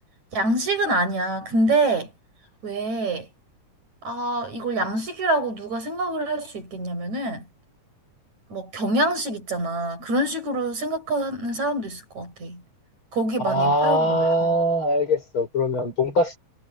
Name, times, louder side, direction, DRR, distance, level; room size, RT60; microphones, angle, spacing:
voice 1, 0.3-2.1 2.6-3.3 4.0-7.4 8.5-12.6 13.1-14.3, right 2 dB, 65° right, 8.9 m, -25 dB
voice 2, 13.4-16.4, equal, 40° left, 5.8 m, -22 dB
omnidirectional pair, 3.6 m